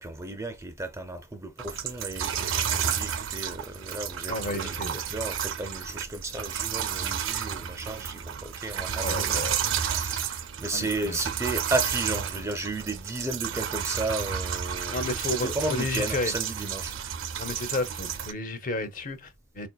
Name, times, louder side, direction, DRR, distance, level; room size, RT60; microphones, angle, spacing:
voice 1, 0.0-16.9, right 2 dB, 15° right, 0.4 m, -34 dB
sound 1, 1.6-18.3, right 8 dB, 85° right, 0.5 m, -31 dB
voice 2, 4.3-5.0 9.0-9.6 10.7-11.2 14.9-16.3 17.4-19.7, left 2 dB, 45° left, 0.7 m, -32 dB
4.4 x 2.7 x 2.2 m
head